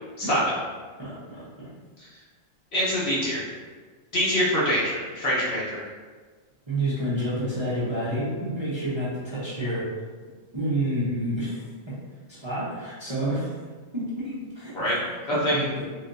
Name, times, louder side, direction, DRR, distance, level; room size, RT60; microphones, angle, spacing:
voice 1, 1.0-1.7 6.7-9.9 10.5-11.9 12.4-13.5 13.9-14.8 15.5-15.8, right 1 dB, 25° right, -10 dB, 0.9 m, -29 dB
voice 2, 2.7-3.4 4.1-5.9 14.7-15.0 15.3-15.7, equal, 55° left, -7 dB, 1.2 m, -24 dB
3.8 x 3.2 x 2.6 m, 1.5 s
omnidirectional pair, 1.4 m